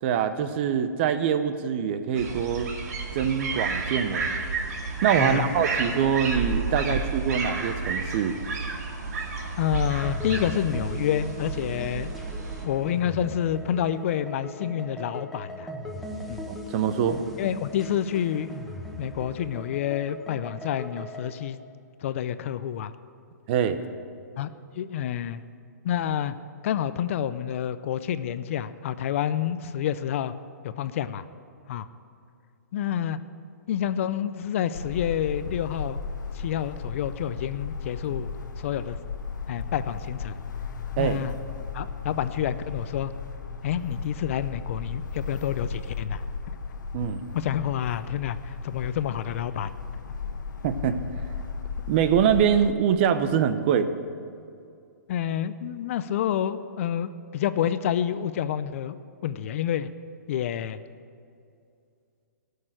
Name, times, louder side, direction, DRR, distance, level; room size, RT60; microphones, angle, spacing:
voice 1, 0.0-2.7 3.1-4.4 5.0-8.3 16.5-17.2 23.5-23.8 41.0-41.2 46.9-47.2 50.6-51.0 51.9-53.9, right 8 dB, 35° right, 10 dB, 0.7 m, -24 dB
sound 1, 2.2-12.6, right 4 dB, 60° right, 2.1 m, -31 dB
voice 2, 5.2-5.6 6.9-7.0 9.6-12.1 12.6-15.7 16.3-16.4 17.4-18.6 19.0-21.6 22.0-22.9 24.4-24.5 24.7-25.4 25.8-26.4 26.6-30.3 30.6-31.2 31.7-31.9 32.7-33.2 33.7-36.0 36.3-38.3 38.6-39.0 39.5-40.4 41.0-41.4 41.7-43.1 43.6-46.2 47.3-49.7 55.1-59.0 59.2-59.9 60.3-60.8, left 10 dB, 45° left, 13 dB, 0.5 m, -28 dB
sound 2, 10.0-21.3, equal, ahead, 1.3 m, -39 dB
sound 3, 34.7-52.7, left 5 dB, 90° left, 1.0 m, -35 dB
14.0 x 6.6 x 9.0 m, 2.4 s
hypercardioid pair, 155°, 10 cm